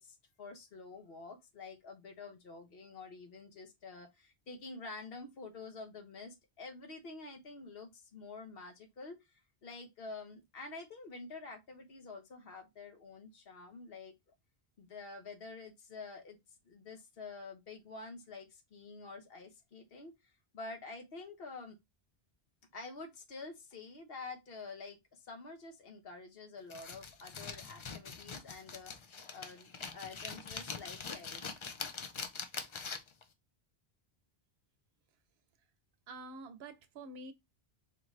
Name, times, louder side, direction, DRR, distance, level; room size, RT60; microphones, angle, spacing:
voice 1, 0.0-14.1 14.8-16.4 16.6-20.1 20.5-21.8 22.7-31.5, left 3 dB, 70° left, 1.1 m, -48 dB
sound 1, 26.7-33.2, left 5 dB, 45° left, 0.4 m, -43 dB
voice 2, 36.1-37.3, right 2 dB, 80° right, 0.8 m, -47 dB
4.2 x 2.5 x 3.1 m
omnidirectional pair, 1.1 m